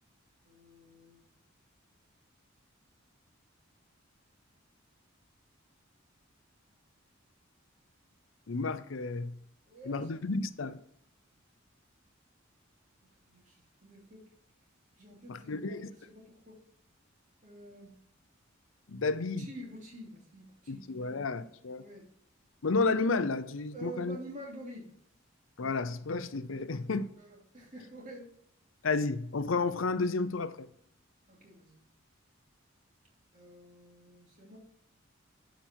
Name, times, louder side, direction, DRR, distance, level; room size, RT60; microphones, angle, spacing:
voice 1, 0.4-1.2 9.7-10.1 13.3-14.2 15.0-16.6 17.4-17.9 19.4-21.1 21.8-22.0 23.7-24.9 27.2-28.3 31.3-31.8 33.3-34.6, right 1 dB, 40° right, 2.8 m, -48 dB
voice 2, 8.5-9.4 9.8-10.8 15.3-15.8 18.9-19.5 20.7-21.8 22.6-24.2 25.6-27.1 28.8-30.7, left 3 dB, 75° left, 0.6 m, -31 dB
11.5 x 5.2 x 4.5 m
head